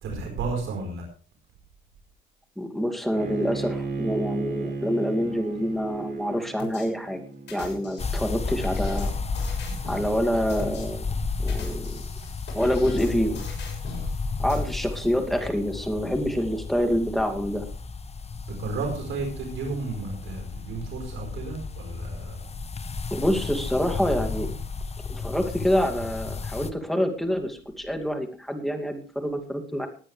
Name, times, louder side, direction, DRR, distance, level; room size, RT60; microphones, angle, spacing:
voice 1, 0.0-1.0 18.6-22.4, right 3 dB, 80° right, 2 dB, 4.7 m, -32 dB
voice 2, 2.6-7.2 7.5-9.1 9.7-11.0 11.4-12.0 12.5-13.4 14.4-17.6 23.1-24.5 25.1-29.9, equal, ahead, 4 dB, 2.5 m, -26 dB
Bowed string instrument, 3.1-8.2, right 4 dB, 65° right, 4.7 m, -35 dB
sound 1, 6.6-6.9 7.5-10.1 10.5-10.8 11.4-14.1 14.5-14.6, left 4 dB, 60° left, 6.6 m, -40 dB
sound 2, 8.0-26.7, left 4 dB, 30° left, 1.2 m, -33 dB
19.0 x 9.9 x 3.4 m, 0.39 s
cardioid pair, 90°, 20 cm